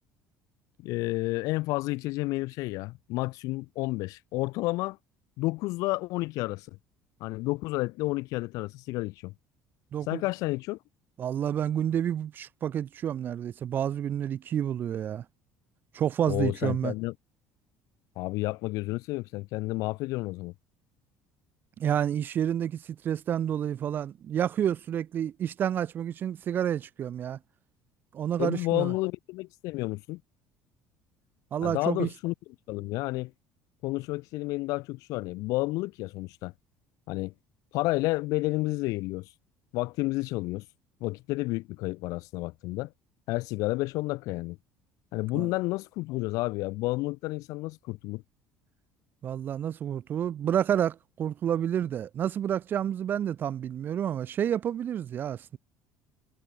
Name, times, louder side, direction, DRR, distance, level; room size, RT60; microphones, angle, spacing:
voice 1, 0.8-5.0 5.4-6.7 7.2-9.3 10.1-10.8 16.3-17.1 18.2-20.5 28.4-30.2 31.6-32.3 32.7-33.3 33.8-36.5 37.1-37.3 37.7-39.3 39.7-40.6 41.0-42.9 43.3-44.6 45.1-48.2, left 21 dB, 70° left, 1.4 m, -30 dB
voice 2, 9.9-10.2 11.2-15.2 15.9-16.9 21.8-27.4 28.1-28.9 31.5-32.1 45.3-45.5 49.2-55.6, right 9 dB, 35° right, 0.4 m, -29 dB
cardioid pair, 155°, 6 cm